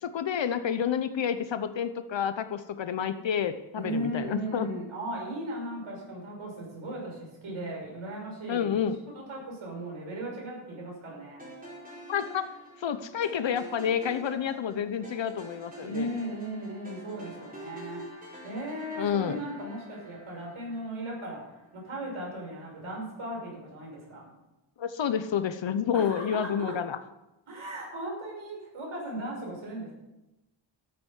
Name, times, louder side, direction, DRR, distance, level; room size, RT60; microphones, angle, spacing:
voice 1, 0.0-4.8 8.5-9.0 12.1-12.5 12.8-16.1 19.0-19.4 24.8-27.0, left 8 dB, 65° left, 10 dB, 0.9 m, -29 dB
voice 2, 3.8-8.8 9.1-11.4 15.8-18.0 18.4-21.4 21.7-24.4 25.9-26.7 27.5-29.9, right 1 dB, 80° right, -2 dB, 6.3 m, -37 dB
sound 1, 11.4-21.7, right 1 dB, 15° right, 4.5 m, -48 dB
13.0 x 8.4 x 7.3 m, 0.97 s
wide cardioid pair, 155°, 48 cm